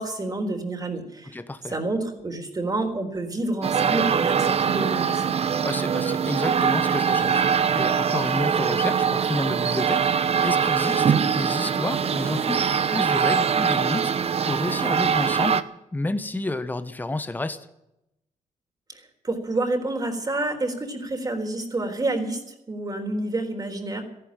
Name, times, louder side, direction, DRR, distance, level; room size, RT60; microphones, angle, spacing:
voice 1, 0.0-1.4 1.6-5.2 19.2-22.4 22.7-24.0, right 2 dB, 30° right, 4 dB, 4.0 m, -28 dB
voice 2, 1.3-1.7 5.6-15.6 15.9-17.7, left 2 dB, 15° left, 11 dB, 1.1 m, -30 dB
sound 1, 3.6-15.6, right 7 dB, 50° right, 0.9 m, -23 dB
14.0 x 11.5 x 8.9 m, 0.87 s
cardioid pair, 95°, 14 cm